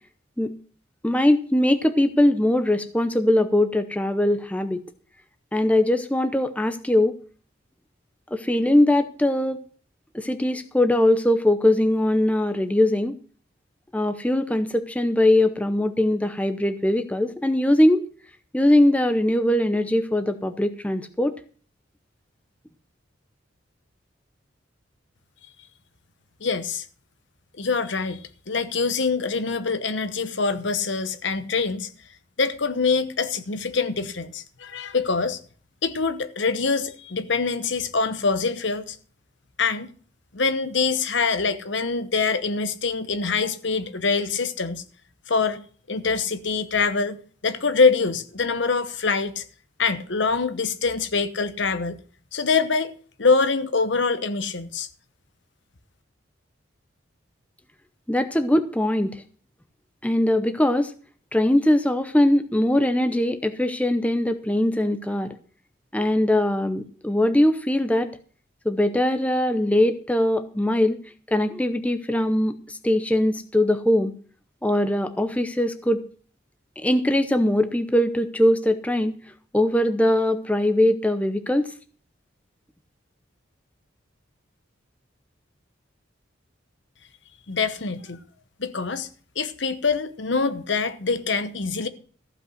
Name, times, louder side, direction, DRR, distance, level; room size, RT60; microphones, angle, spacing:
voice 1, 1.0-4.8 5.5-7.1 8.3-9.6 10.1-13.1 13.9-18.0 18.5-21.4 58.1-59.2 60.0-60.9 61.3-65.3 65.9-68.1 68.6-71.0 71.3-74.1 74.6-76.0 76.8-79.1 79.5-81.7, left 1 dB, 5° left, 0.6 m, -21 dB
voice 2, 26.4-26.8 27.6-31.9 32.4-35.4 35.8-39.0 39.6-39.9 40.3-44.8 45.3-45.6 45.9-47.2 47.4-49.4 49.8-52.0 52.3-52.9 53.2-54.9 87.5-88.2 88.6-89.1 89.4-91.9, left 4 dB, 65° left, 1.0 m, -24 dB
14.5 x 5.4 x 7.9 m
head